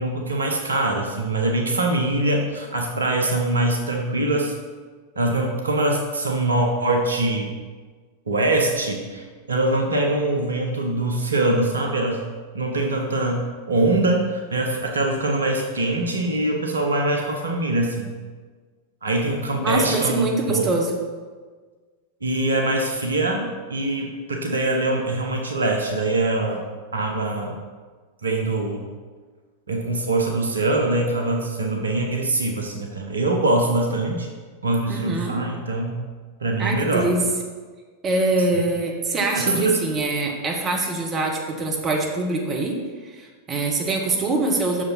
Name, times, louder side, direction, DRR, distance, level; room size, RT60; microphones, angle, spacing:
voice 1, 0.0-4.5 5.1-7.5 8.3-12.2 12.5-18.1 19.0-20.7 22.2-26.6 26.9-27.6 28.2-28.8 29.7-34.3 34.6-36.0 36.4-37.1 39.3-39.8, right 2 dB, 75° right, 1 dB, 0.9 m, -23 dB
voice 2, 19.6-20.9 34.9-35.4 36.6-37.2 38.0-42.7 43.0-44.8, right 2 dB, 25° right, 1 dB, 1.2 m, -24 dB
6.4 x 5.0 x 5.7 m, 1.5 s
figure-of-eight pair, 90°, 0 cm